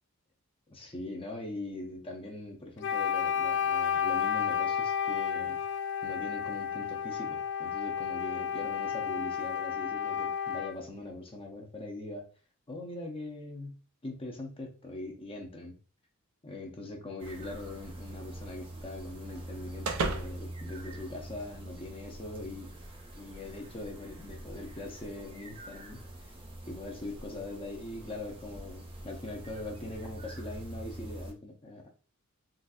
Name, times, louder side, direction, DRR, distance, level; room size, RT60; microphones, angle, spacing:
voice 1, 0.7-5.6 6.0-12.2 12.7-15.8 16.4-22.7 23.1-26.0 26.7-31.9, left 2 dB, 25° left, 1 dB, 0.7 m, -42 dB
Wind instrument woodwind instrument, 2.8-10.8, left 8 dB, 55° left, 0.4 m, -31 dB
sound 1, 17.2-31.3, right 1 dB, 25° right, 0.6 m, -45 dB
sound 2, 17.3-21.7, right 3 dB, 75° right, 0.5 m, -39 dB
4.0 x 2.5 x 2.3 m, 0.37 s
head